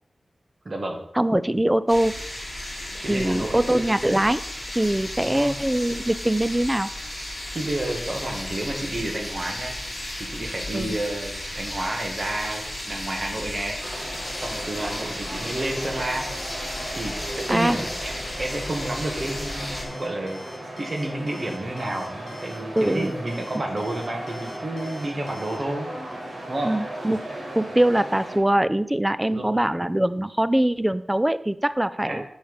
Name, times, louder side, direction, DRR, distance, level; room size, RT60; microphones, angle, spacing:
voice 1, 0.7-1.0 3.0-3.6 5.2-5.6 7.5-9.7 10.3-13.8 14.4-16.3 17.0-17.1 17.5-20.4 20.8-25.9 26.5-26.7 29.2-29.7 32.0-32.2, right 1 dB, 45° right, 2 dB, 1.8 m, -30 dB
voice 2, 1.2-2.2 2.9-4.4 4.8-6.9 10.7-11.0 17.5-17.8 22.8-23.1 26.6-27.3 27.5-32.2, right 1 dB, 10° right, 15 dB, 0.4 m, -22 dB
sound 1, 1.9-19.8, left 1 dB, 15° left, 3.0 m, -34 dB
sound 2, 13.8-28.4, right 1 dB, 85° right, 2.7 m, -37 dB
Alarm, 14.2-25.6, left 2 dB, 65° left, 1.2 m, -47 dB
7.2 x 5.0 x 5.5 m, 0.71 s
wide cardioid pair, 80°, 0 cm